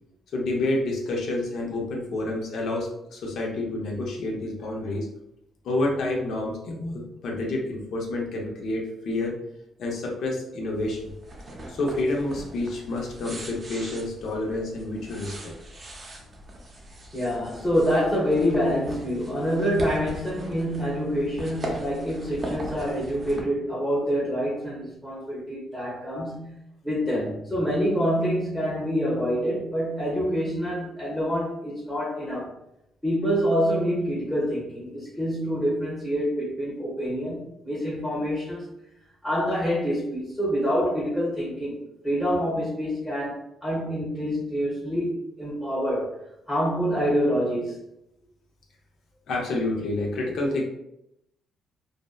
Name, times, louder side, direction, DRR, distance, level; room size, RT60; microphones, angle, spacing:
voice 1, 0.3-5.1 5.6-9.3 9.8-11.1 11.7-15.5 49.3-50.6, left 2 dB, 70° left, -1 dB, 0.6 m, -29 dB
sound 1, 10.7-23.4, right 1 dB, 35° right, 0.6 m, -40 dB
voice 2, 17.1-26.6 26.8-32.5 33.0-38.7 39.2-41.8 42.0-46.2 46.5-47.8, equal, 10° left, -9 dB, 0.9 m, -26 dB
2.6 x 2.1 x 2.3 m, 0.83 s
cardioid pair, 90°, 0 cm